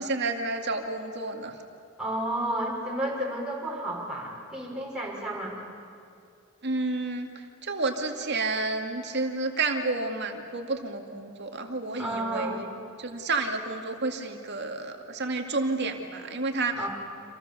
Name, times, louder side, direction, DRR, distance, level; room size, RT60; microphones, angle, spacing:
voice 1, 0.0-1.5 6.6-7.3 7.6-12.7 13.0-16.8, right 3 dB, 55° right, 4 dB, 2.4 m, -30 dB
voice 2, 2.0-5.6 12.0-12.6 16.8-16.9, right 1 dB, 5° right, -4 dB, 5.9 m, -31 dB
28.5 x 27.0 x 7.1 m, 2.5 s
head